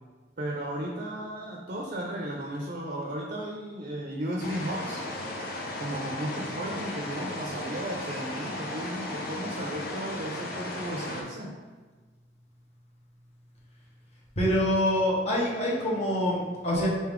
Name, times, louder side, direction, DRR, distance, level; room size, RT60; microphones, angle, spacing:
voice 1, 0.4-5.0 5.8-11.5, right 1 dB, 45° right, 0 dB, 0.5 m, -35 dB
sound 1, 4.4-11.2, left 1 dB, 55° left, 0.7 m, -36 dB
voice 2, 14.4-16.9, equal, 35° left, -5 dB, 1.2 m, -25 dB
4.1 x 3.5 x 3.6 m, 1.4 s
head